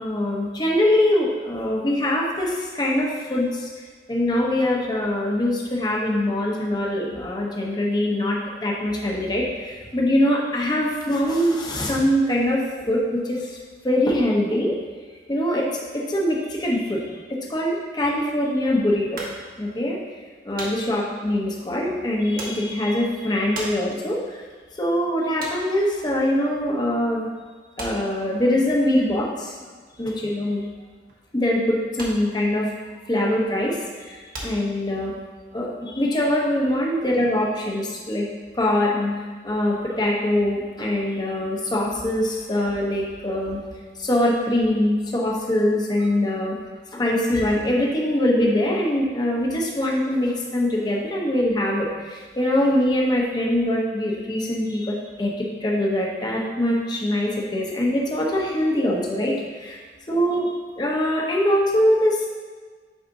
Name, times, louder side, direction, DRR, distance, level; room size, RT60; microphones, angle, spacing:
voice 1, 0.0-3.7 4.1-13.6 13.8-14.7 15.3-17.0 17.3-19.2 19.6-20.0 20.4-24.4 24.7-27.2 27.8-29.6 30.0-30.6 31.3-32.7 33.1-35.1 35.5-38.3 38.5-39.1 39.4-43.6 44.0-46.6 46.9-59.8 60.1-62.3, left 1 dB, 25° left, -3 dB, 0.9 m, -23 dB
sound 1, 19.2-27.0 27.3-35.3, right 1 dB, 55° right, 1.2 m, -40 dB
8.8 x 4.1 x 2.7 m, 1.5 s
head